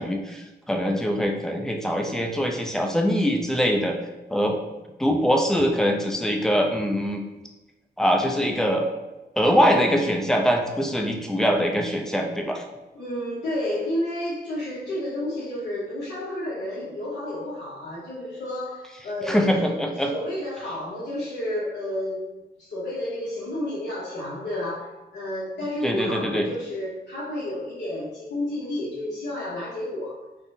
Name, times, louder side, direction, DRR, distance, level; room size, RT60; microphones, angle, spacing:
voice 1, 0.0-4.0 4.3-4.6 5.0-7.2 8.0-8.9 9.4-12.6 19.2-20.1 25.8-26.5, equal, 5° left, 2 dB, 0.4 m, -23 dB
voice 2, 12.9-22.2 22.6-30.1, left 1 dB, 75° left, -9 dB, 0.8 m, -31 dB
3.5 x 2.0 x 2.7 m, 1.1 s
wide cardioid pair, 100°, 18 cm